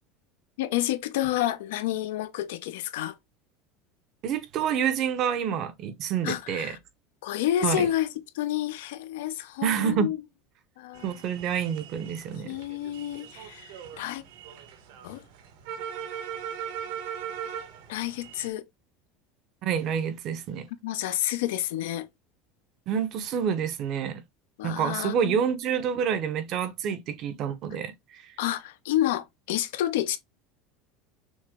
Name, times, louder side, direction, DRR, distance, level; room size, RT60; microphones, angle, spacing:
voice 1, 0.6-3.1 6.2-6.8 7.2-8.1 8.3-10.2 10.8-11.0 12.4-14.2 15.0-15.2 17.9-18.6 20.8-22.1 24.6-25.4 28.4-30.2, left 13 dB, 85° left, 0.7 m, -29 dB
voice 2, 4.2-6.8 7.6-7.9 9.6-10.1 11.0-12.6 19.6-20.7 22.9-24.2 24.6-28.3, right 8 dB, 35° right, 0.7 m, -28 dB
sound 1, 10.9-18.5, right 8 dB, 65° right, 1.1 m, -40 dB
6.2 x 2.1 x 3.5 m
cardioid pair, 175°, 0 cm